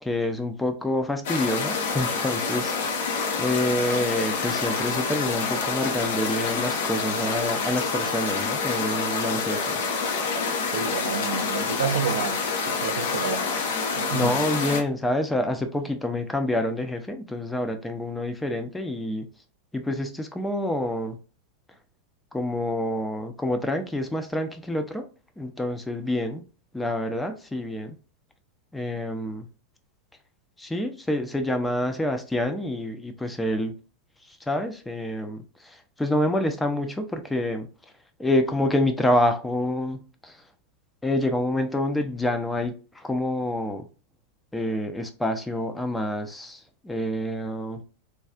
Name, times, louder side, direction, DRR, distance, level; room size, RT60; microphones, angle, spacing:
voice 1, 0.0-2.7 3.4-9.8 14.1-19.3 19.7-21.2 22.3-25.1 25.4-26.4 26.7-28.0 28.7-29.5 30.6-33.7 34.5-37.7 38.2-40.4 41.0-43.9 44.5-47.8, left 1 dB, 5° left, 0.4 m, -27 dB
sound 1, 1.2-14.8, left 4 dB, 55° left, 0.6 m, -27 dB
voice 2, 10.7-13.5 14.0-14.4, right 6 dB, 60° right, 0.4 m, -30 dB
3.3 x 2.4 x 2.2 m
figure-of-eight pair, 90°, 0 cm